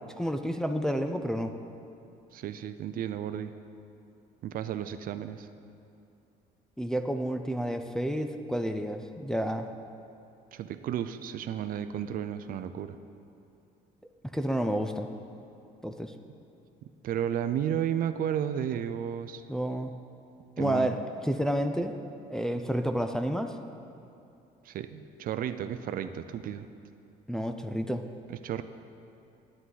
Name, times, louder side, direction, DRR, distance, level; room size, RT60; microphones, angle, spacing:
voice 1, 0.2-1.5 6.8-9.7 14.3-15.1 15.8-16.1 19.5-19.9 20.6-21.0 21.2-21.9 22.3-23.5 27.3-28.0, equal, 5° left, 6 dB, 0.4 m, -30 dB
voice 2, 2.3-3.5 4.4-5.5 10.5-13.0 17.0-19.4 20.6-20.9 24.6-26.7 28.3-28.6, right 9 dB, 55° right, 10 dB, 0.4 m, -33 dB
9.8 x 9.7 x 3.9 m, 2.6 s
cardioid pair, 110°, 17 cm